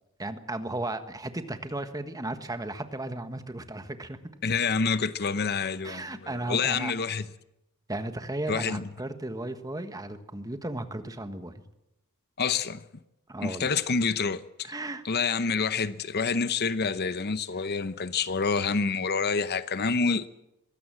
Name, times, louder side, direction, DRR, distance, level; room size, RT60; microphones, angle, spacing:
voice 1, 0.2-4.2 5.8-6.9 7.9-11.6 13.3-13.7 14.6-15.0, right 2 dB, 15° right, 1.4 m, -35 dB
voice 2, 4.4-7.2 8.5-8.9 12.4-12.8 13.4-14.7 15.0-20.3, left 5 dB, 50° left, 0.8 m, -27 dB
22.0 x 16.5 x 7.6 m
head